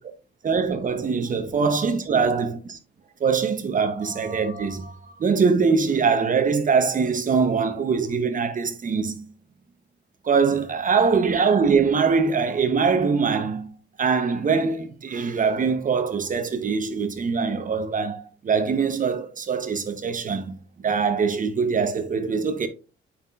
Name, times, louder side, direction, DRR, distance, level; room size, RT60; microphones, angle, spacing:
voice 1, 0.4-2.8 3.2-9.2 10.2-13.7 14.0-20.5 20.8-22.7, right 5 dB, 40° right, 0.8 m, -23 dB
8.0 x 5.5 x 2.4 m
cardioid pair, 90°, 20 cm